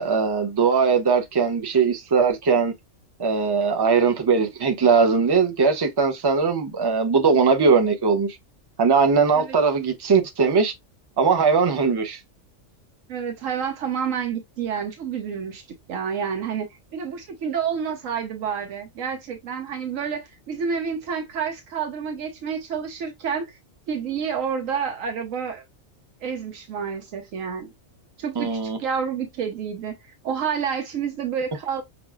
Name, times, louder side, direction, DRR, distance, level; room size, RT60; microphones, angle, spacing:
voice 1, 0.0-2.7 3.2-8.4 8.8-10.7 11.2-12.2 28.4-28.8, right 5 dB, 30° right, 0.5 m, -20 dB
voice 2, 13.1-23.6 23.9-25.6 26.2-27.7 28.2-31.8, right 7 dB, 85° right, 1.1 m, -29 dB
6.0 x 2.4 x 2.3 m
omnidirectional pair, 1.3 m